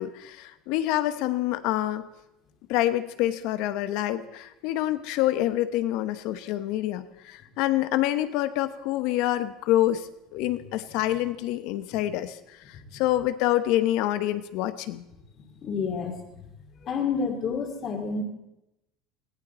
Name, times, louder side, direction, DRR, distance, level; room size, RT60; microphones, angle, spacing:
voice 1, 0.0-2.1 2.7-12.4 12.7-15.0, left 14 dB, 65° left, 11 dB, 1.0 m, -27 dB
voice 2, 15.4-16.2 16.8-18.2, left 5 dB, 40° left, 3 dB, 2.3 m, -29 dB
20.5 x 15.0 x 4.3 m, 0.90 s
supercardioid pair, 125°, 0 cm